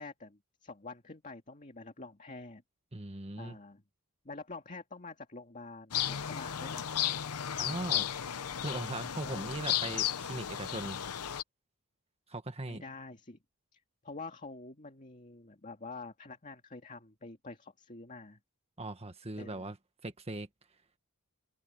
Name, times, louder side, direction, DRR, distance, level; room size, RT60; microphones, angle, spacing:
voice 1, 0.0-2.6 3.4-3.8 4.2-6.9 9.2-9.6 12.7-13.4 13.7-18.4 19.4-19.7, left 3 dB, 35° left, 2.3 m, -47 dB
voice 2, 2.9-3.6 7.6-8.1 8.6-11.0 12.3-12.8 18.8-19.8 20.0-20.5, right 2 dB, 30° right, 1.7 m, -39 dB
sound 1, 5.9-11.4, left 10 dB, 85° left, 0.8 m, -34 dB
head